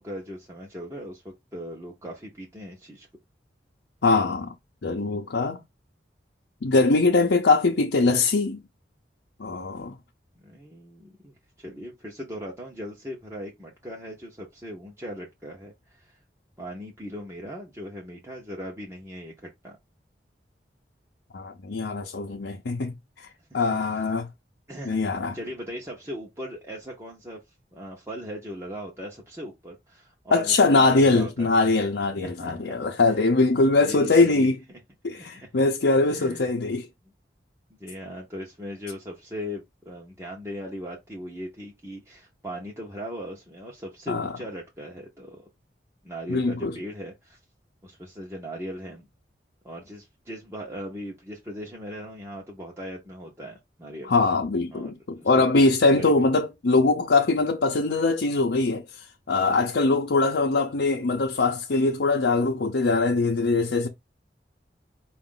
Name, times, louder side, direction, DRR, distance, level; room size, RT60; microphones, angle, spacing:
voice 1, 0.0-3.1 10.3-16.2 16.6-19.8 23.5-24.0 24.7-25.0 25.3-27.4 27.7-31.5 32.2-32.8 33.0-33.2 33.9-34.5 35.4-35.5 36.1-36.5 37.8-45.5 46.0-47.4 47.8-49.1 49.6-54.1 54.7-54.9 55.2-55.5 55.9-56.2, equal, 15° right, 0.8 m, -39 dB
voice 2, 4.0-4.5 4.8-5.6 6.6-8.6 9.4-10.0 21.3-22.9 23.5-24.3 24.8-25.4 30.3-34.5 35.0-36.9 44.1-44.3 46.3-46.8 54.1-58.8 59.3-63.9, left 3 dB, 90° left, 0.6 m, -22 dB
4.8 x 2.5 x 3.7 m
head